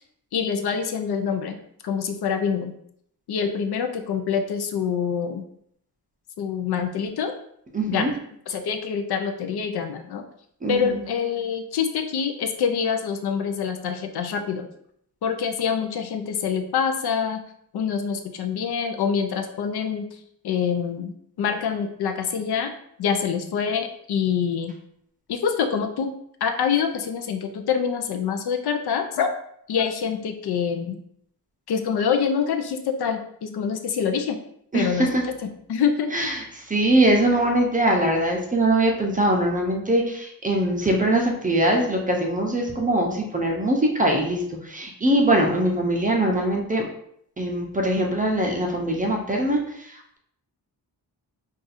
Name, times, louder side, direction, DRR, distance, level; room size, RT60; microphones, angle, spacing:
voice 1, 0.3-1.6 1.8-2.7 3.3-5.4 6.4-7.3 7.9-8.2 8.5-10.2 10.7-14.7 15.2-17.4 17.7-20.1 20.4-22.7 23.0-24.7 25.3-26.1 26.4-29.3 29.7-31.0 31.7-34.4 34.7-36.1, left 7 dB, 70° left, 6 dB, 0.5 m, -25 dB
voice 2, 7.7-8.1 10.6-11.0 34.7-35.2 36.1-46.8 47.4-50.2, right 1 dB, 20° right, 1 dB, 0.5 m, -22 dB
2.6 x 2.4 x 4.0 m, 0.69 s
wide cardioid pair, 130°, 41 cm